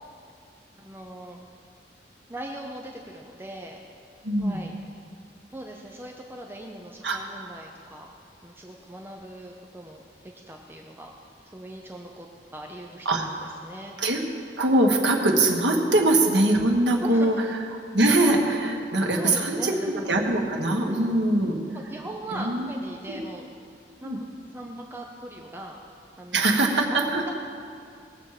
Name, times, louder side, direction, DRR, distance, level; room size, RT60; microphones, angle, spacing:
voice 1, 0.8-1.4 2.3-3.8 4.3-4.7 5.5-8.1 8.4-10.0 10.5-11.1 11.4-12.3 12.5-13.2 13.6-13.9 17.0-17.6 19.2-19.9 20.8-21.0 21.7-23.5 24.0-24.3 24.5-25.8 26.2-26.5, right 1 dB, 15° right, 1 dB, 0.7 m, -39 dB
voice 2, 4.2-4.6 7.0-7.2 13.0-13.2 14.0-14.2 14.6-17.3 17.9-21.5 22.3-22.7 23.1-23.2 24.0-24.2 26.3-27.3, right 2 dB, 85° right, 1 dB, 1.7 m, -22 dB
20.0 x 7.3 x 4.9 m, 2.4 s
head